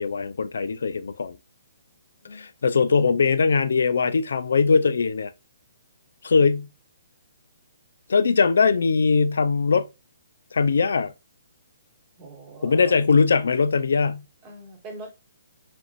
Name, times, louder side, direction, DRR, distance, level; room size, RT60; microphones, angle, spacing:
voice 1, 0.0-1.4 2.6-5.3 6.2-6.7 8.1-9.9 10.5-11.1 12.6-14.2, left 5 dB, 75° left, 0.6 m, -20 dB
voice 2, 12.2-13.1 14.4-15.2, right 2 dB, 20° right, 2.2 m, -42 dB
5.2 x 3.6 x 2.4 m
hypercardioid pair, 150°, 0 cm